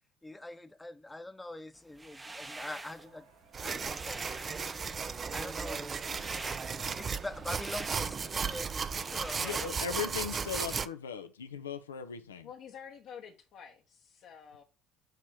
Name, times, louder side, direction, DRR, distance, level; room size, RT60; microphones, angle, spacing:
voice 1, 0.2-3.3 3.6-4.5 5.3-6.3 6.9-9.7, left 2 dB, 10° left, 0.8 m, -44 dB
sound 1, 1.9-3.1 3.5-9.7, right 2 dB, 15° right, 0.8 m, -46 dB
sound 2, 2.8-8.6, right 8 dB, 70° right, 1.0 m, -57 dB
sound 3, 3.5-10.9, right 5 dB, 35° right, 0.4 m, -35 dB
voice 2, 9.4-12.5, left 7 dB, 85° left, 0.5 m, -38 dB
voice 3, 12.4-14.6, left 7 dB, 55° left, 0.9 m, -49 dB
6.9 x 3.0 x 5.8 m
figure-of-eight pair, 60°, 0 cm